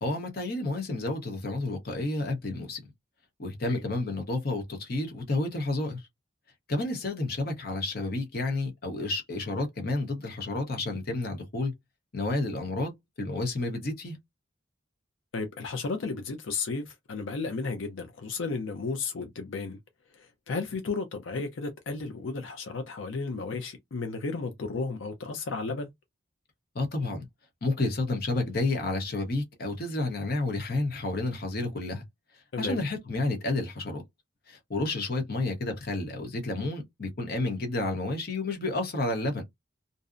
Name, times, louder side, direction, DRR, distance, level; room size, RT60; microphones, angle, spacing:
voice 1, 0.0-2.8 3.4-6.0 6.7-11.7 12.1-12.9 13.2-14.2 26.7-27.3 27.6-32.0 32.6-34.0 34.5-39.4, left 2 dB, 55° left, 0.8 m, -30 dB
voice 2, 15.3-19.8 20.1-25.9 32.5-32.8, left 4 dB, 85° left, 0.5 m, -33 dB
2.6 x 2.0 x 2.4 m
head